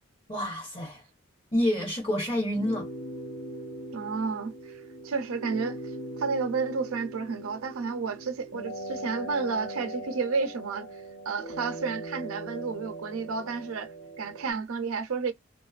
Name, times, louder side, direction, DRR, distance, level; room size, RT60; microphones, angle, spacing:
voice 1, 0.3-1.0 1.5-2.9, left 1 dB, 25° left, 0.8 m, -28 dB
sound 1, 2.5-14.5, right 1 dB, 75° left, 0.6 m, -40 dB
voice 2, 3.9-5.8 6.2-15.3, right 4 dB, 75° right, 0.4 m, -31 dB
2.5 x 2.2 x 2.3 m
head